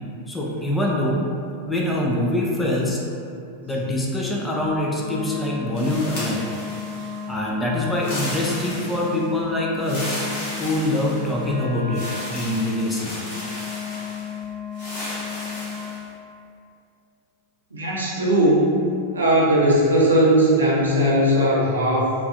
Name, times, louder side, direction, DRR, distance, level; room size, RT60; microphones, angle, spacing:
voice 1, 0.3-1.3 1.7-3.0 3.6-6.5 6.9-10.2 10.6-12.0 12.3-13.2, left 1 dB, 10° left, -3 dB, 0.3 m, -24 dB
Wind instrument woodwind instrument, 5.0-16.0, left 7 dB, 70° left, 1.0 m, -34 dB
sound 1, 5.7-7.2 7.9-9.3 9.8-11.5 11.9-14.3 14.7-16.0, left 1 dB, 45° left, 0.8 m, -34 dB
voice 2, 17.7-18.7 19.1-22.1, right 1 dB, 75° right, -5 dB, 0.5 m, -18 dB
2.4 x 2.3 x 2.2 m, 2.4 s
figure-of-eight pair, 90°, 0 cm